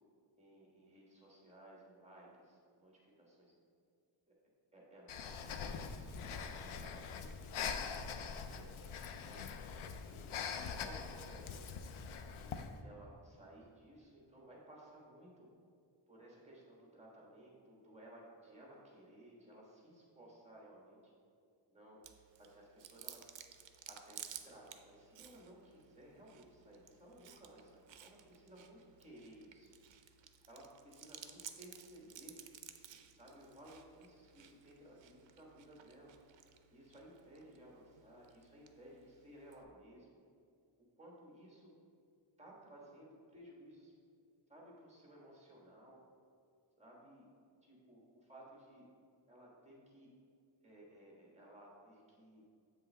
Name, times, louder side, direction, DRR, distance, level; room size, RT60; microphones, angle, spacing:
voice 1, 0.4-3.5 4.7-7.8 8.5-9.4 10.0-11.7 12.3-15.5 16.1-21.1 21.7-22.0 22.4-23.3 23.9-29.7 30.5-32.3 33.1-36.2 36.7-40.2 41.0-41.7 42.4-43.9 44.5-46.0 46.8-47.3 47.6-48.9 49.3-50.1 50.6-52.4, right 1 dB, 15° right, -3 dB, 1.3 m, -58 dB
Breathing, 5.1-12.8, left 6 dB, 85° left, 0.6 m, -43 dB
Chewing mastication, 22.0-39.6, right 9 dB, 65° right, 0.5 m, -56 dB
7.5 x 5.5 x 3.3 m, 2.4 s
wide cardioid pair, 175°, 48 cm